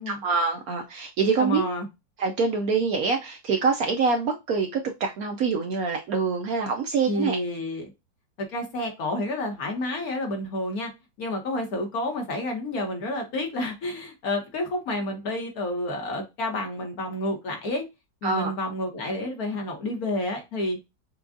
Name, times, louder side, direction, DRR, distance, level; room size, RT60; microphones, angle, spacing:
voice 1, 0.0-1.6 2.2-7.4 18.2-18.5, right 4 dB, 70° right, 0.9 m, -25 dB
voice 2, 1.4-1.9 7.1-7.9 8.5-10.9 11.2-17.8 18.2-20.8, left 1 dB, 55° left, 1.5 m, -29 dB
6.0 x 2.3 x 2.5 m
omnidirectional pair, 1.9 m